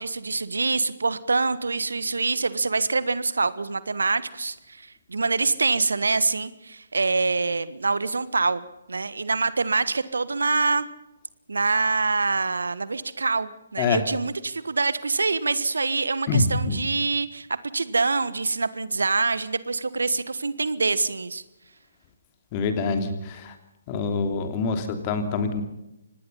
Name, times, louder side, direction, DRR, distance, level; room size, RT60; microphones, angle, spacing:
voice 1, 0.0-10.9 11.5-21.4, right 3 dB, 70° right, 16 dB, 1.4 m, -25 dB
voice 2, 16.3-16.8 22.5-23.6 23.9-25.6, left 4 dB, 30° left, 7 dB, 3.1 m, -25 dB
25.5 x 19.5 x 5.6 m, 0.92 s
figure-of-eight pair, 135°, 0 cm